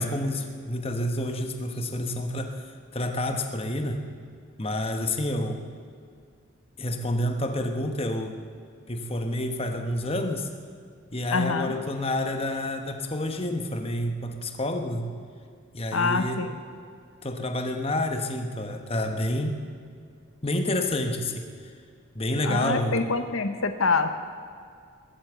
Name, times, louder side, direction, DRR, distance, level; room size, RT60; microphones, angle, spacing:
voice 1, 0.0-2.5 2.9-4.0 4.6-5.6 6.8-8.4 8.9-10.5 11.1-15.2 15.7-16.4 17.2-19.6 20.4-21.5 22.1-23.0, left 1 dB, 25° left, 5 dB, 1.0 m, -29 dB
voice 2, 11.3-11.7 15.9-16.6 22.4-24.3, left 4 dB, 65° left, 8 dB, 0.8 m, -26 dB
20.5 x 8.4 x 8.0 m, 2.2 s
head